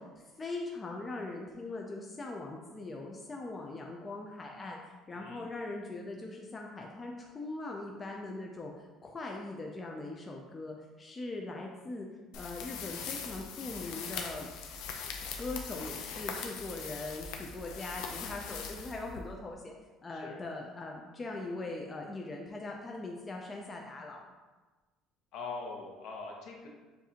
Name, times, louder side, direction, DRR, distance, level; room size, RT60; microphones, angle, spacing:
voice 1, 0.0-12.1 12.3-14.5 15.4-19.7 20.0-24.2, left 2 dB, 20° left, 0 dB, 0.4 m, -41 dB
sound 1, 12.3-19.5, left 6 dB, 80° left, 0.5 m, -41 dB
voice 2, 25.3-26.7, left 4 dB, 60° left, 0 dB, 0.9 m, -42 dB
7.1 x 2.6 x 2.8 m, 1.3 s
cardioid pair, 145°, 0 cm